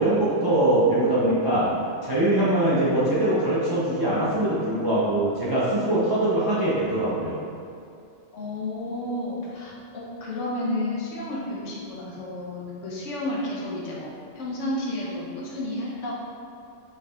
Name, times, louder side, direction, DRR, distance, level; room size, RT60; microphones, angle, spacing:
voice 1, 0.0-1.7 2.0-7.4, right 1 dB, 30° right, -10 dB, 0.4 m, -22 dB
voice 2, 8.3-16.1, left 1 dB, 80° left, -4 dB, 1.1 m, -31 dB
4.8 x 3.2 x 2.3 m, 2.5 s
omnidirectional pair, 1.3 m